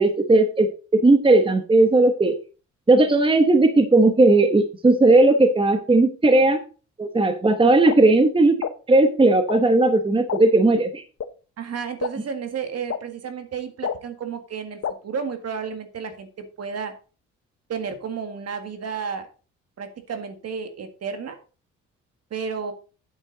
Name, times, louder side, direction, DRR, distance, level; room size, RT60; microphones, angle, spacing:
voice 1, 0.0-2.4 2.9-6.6 7.0-8.6 8.9-11.0, right 2 dB, 15° right, 8 dB, 1.1 m, -17 dB
sound 1, 7.9-8.0 8.6-8.7 9.5-9.6 10.3-10.4 11.2-11.3 12.0-12.1 12.9-13.0 13.8-14.0 14.8-14.9, left 9 dB, 50° left, 1.0 m, -26 dB
voice 2, 11.6-16.9 17.7-19.3 19.8-21.4 22.3-22.7, right 6 dB, 55° right, 8 dB, 1.9 m, -32 dB
8.9 x 7.4 x 3.9 m, 0.35 s
cardioid pair, 90°, 30 cm